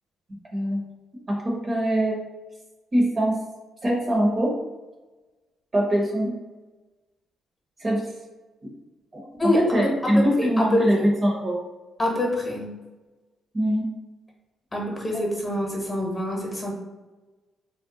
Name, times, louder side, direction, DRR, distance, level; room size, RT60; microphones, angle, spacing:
voice 1, 0.5-0.8 1.3-2.2 2.9-3.4 3.8-4.5 5.7-6.3 7.8-8.0 8.6-8.7 9.1-11.6 13.5-13.9, equal, 30° right, -1 dB, 0.7 m, -23 dB
voice 2, 9.4-10.8 12.0-12.7 14.7-16.7, left 1 dB, 20° left, 0 dB, 0.9 m, -26 dB
2.6 x 2.1 x 3.7 m, 1.2 s
cardioid pair, 90°, 0 cm